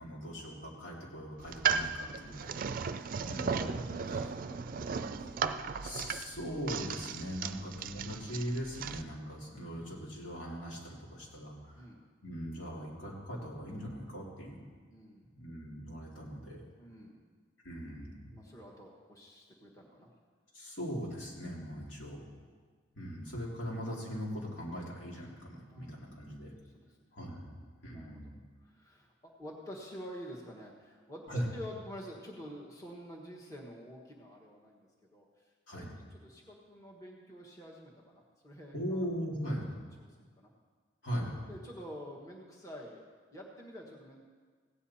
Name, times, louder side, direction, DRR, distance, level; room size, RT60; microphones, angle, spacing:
voice 1, 0.0-2.5 2.9-3.8 5.8-11.8 12.2-14.6 15.3-16.6 17.6-18.3 20.5-22.2 22.9-26.5 27.1-27.5 27.8-28.4 31.3-31.5 35.7-35.9 38.7-39.8 41.0-41.4, equal, 80° left, -4 dB, 2.8 m, -40 dB
sound 1, 1.4-9.0, right 5 dB, 45° right, 0.4 m, -36 dB
voice 2, 2.1-2.6 3.1-5.8 7.5-7.7 11.8-12.0 14.9-15.3 16.8-17.2 18.3-20.1 25.7-25.9 26.6-27.1 27.5-28.3 28.6-39.1 40.0-40.5 41.5-44.2, equal, 15° left, -3 dB, 1.4 m, -49 dB
16.5 x 9.4 x 4.3 m, 1.5 s
head